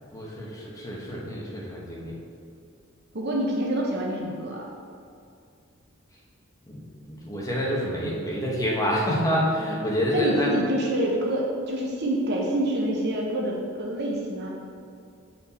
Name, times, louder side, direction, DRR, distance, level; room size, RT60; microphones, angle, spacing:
voice 1, 0.1-2.1 6.7-10.5, equal, 15° left, -4 dB, 1.1 m, -27 dB
voice 2, 3.1-4.6 10.1-14.5, right 1 dB, 55° right, -2 dB, 0.9 m, -27 dB
7.5 x 4.4 x 4.2 m, 2.4 s
head